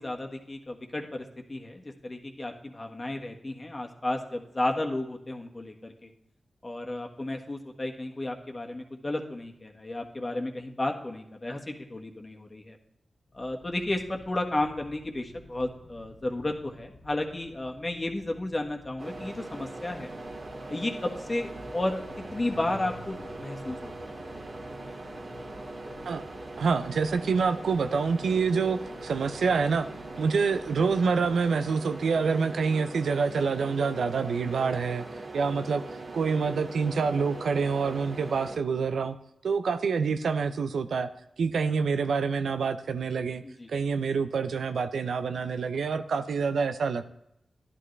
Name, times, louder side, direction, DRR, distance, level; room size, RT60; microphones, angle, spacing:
voice 1, 0.0-6.1 6.6-12.8 13.3-20.1 20.7-24.2 43.4-43.7, left 1 dB, 35° left, 3 dB, 1.5 m, -33 dB
sound 1, 13.3-31.7, left 2 dB, 65° left, 1.2 m, -52 dB
sound 2, 19.0-38.6, right 2 dB, 60° right, 1.7 m, -41 dB
voice 2, 26.6-29.9 30.2-35.0 35.3-35.8 36.1-39.2 39.4-41.1 41.4-43.4 43.7-47.1, right 5 dB, 85° right, 10 dB, 0.5 m, -27 dB
11.0 x 10.5 x 3.3 m, 0.80 s
cardioid pair, 45°, 0 cm